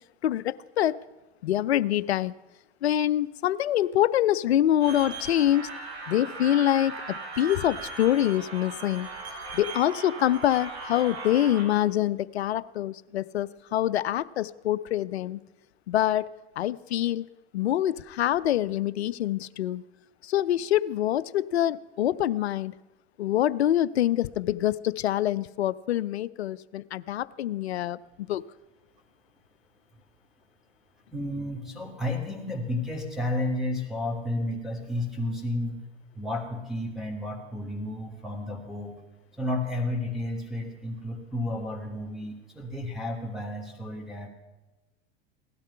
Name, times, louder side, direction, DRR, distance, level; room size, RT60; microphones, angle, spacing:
voice 1, 0.2-0.9 1.4-2.3 2.8-5.7 6.1-9.1 9.5-15.4 15.9-16.3 16.6-17.3 17.5-19.8 20.2-22.7 23.2-28.4, left 12 dB, 90° left, 18 dB, 0.5 m, -25 dB
sound 1, 4.8-11.6, right 3 dB, 85° right, 4.5 m, -38 dB
voice 2, 31.1-35.8 36.1-39.0 39.4-44.3, left 1 dB, ahead, 1 dB, 3.0 m, -32 dB
17.0 x 12.0 x 5.6 m, 1.1 s
hypercardioid pair, 95°, 31 cm